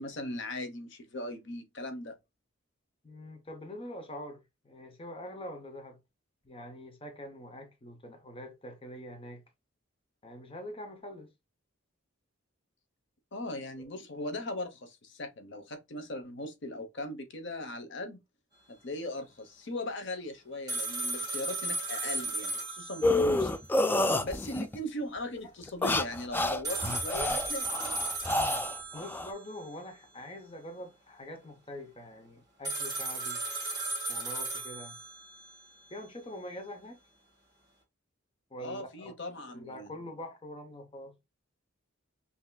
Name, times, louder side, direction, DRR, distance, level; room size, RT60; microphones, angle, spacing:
voice 1, 0.0-2.2 13.3-18.2 18.7-23.6 24.2-27.8 38.6-39.9, left 1 dB, 60° left, 0.9 m, -39 dB
voice 2, 3.0-6.0 6.4-9.4 10.2-11.3 28.9-33.4 34.1-35.0 35.9-37.0 38.5-39.1 39.5-41.2, left 1 dB, 30° left, 0.8 m, -44 dB
sound 1, 20.7-23.7 24.0-24.1 26.6-29.7 32.7-35.7, right 2 dB, 20° right, 1.7 m, -35 dB
sound 2, 23.0-24.8 25.6-29.3, left 2 dB, 10° left, 0.3 m, -29 dB
5.7 x 2.8 x 2.2 m
head